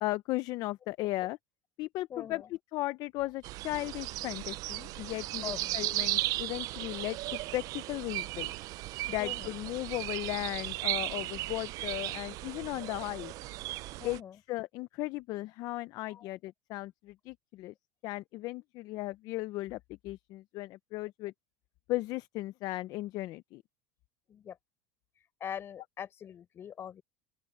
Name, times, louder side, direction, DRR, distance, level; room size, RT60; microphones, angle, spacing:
voice 1, 0.0-1.4 1.8-8.5 9.1-13.3 14.0-14.2 14.5-17.7 18.0-21.3 21.9-23.6, left 18 dB, 45° left, 0.6 m, -36 dB
voice 2, 2.1-2.5 5.4-5.7 9.2-9.5 14.0-14.4 16.1-16.3 24.3-24.6 25.4-27.0, left 9 dB, 30° left, 5.5 m, -42 dB
sound 1, 3.4-14.2, right 18 dB, 45° right, 0.4 m, -36 dB
open air
supercardioid pair, 140°, 8 cm